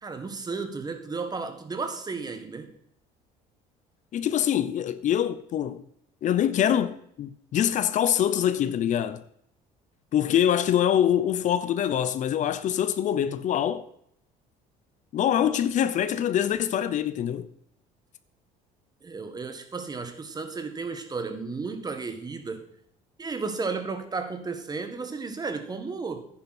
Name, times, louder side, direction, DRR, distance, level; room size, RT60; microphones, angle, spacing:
voice 1, 0.0-2.7 19.0-22.7 23.2-26.2, right 4 dB, 25° right, 1.6 m, -33 dB
voice 2, 4.1-5.8 6.2-9.2 10.1-13.8 15.1-17.5, left 10 dB, 55° left, 0.7 m, -24 dB
10.5 x 9.8 x 4.3 m
supercardioid pair, 95°, 16 cm